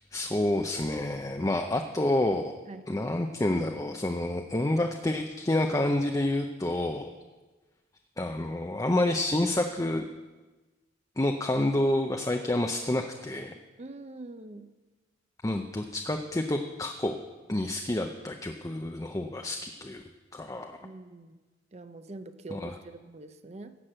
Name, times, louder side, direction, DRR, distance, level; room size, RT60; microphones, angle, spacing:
voice 1, 0.1-2.6 2.9-7.1 8.2-10.1 11.2-13.6 15.4-17.2 17.5-20.0 20.3-20.7 22.5-22.7, left 1 dB, 15° left, 4 dB, 0.5 m, -28 dB
voice 2, 13.8-14.7 20.8-21.4 21.7-23.8, right 2 dB, 35° right, 10 dB, 0.6 m, -44 dB
16.0 x 5.9 x 7.8 m, 1.2 s
head